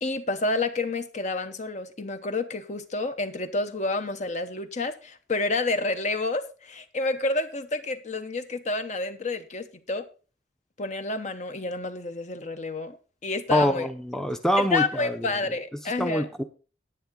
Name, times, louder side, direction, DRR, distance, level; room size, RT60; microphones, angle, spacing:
voice 1, 0.0-10.0 10.8-13.0 13.2-13.9 14.6-16.3, left 3 dB, 40° left, 0.9 m, -29 dB
voice 2, 13.5-15.3 16.0-16.4, equal, 5° left, 0.7 m, -25 dB
10.0 x 8.9 x 3.8 m
head